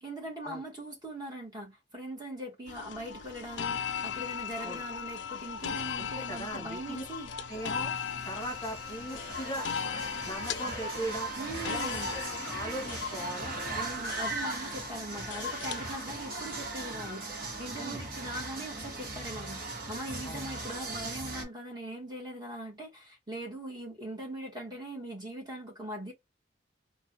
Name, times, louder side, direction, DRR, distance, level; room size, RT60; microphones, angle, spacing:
voice 1, 0.0-7.3 11.4-12.1 13.7-26.1, right 1 dB, 20° right, 1.2 m, -41 dB
sound 1, 2.7-16.6, left 7 dB, 75° left, 0.4 m, -38 dB
voice 2, 6.0-7.0 7.5-7.9 8.3-9.7 10.2-11.3 11.7-13.8 15.8-16.1 17.7-18.0 20.2-20.4, right 1 dB, 20° left, 1.0 m, -39 dB
sound 2, 7.6-21.4, right 2 dB, 50° right, 1.1 m, -39 dB
3.2 x 2.1 x 2.7 m
head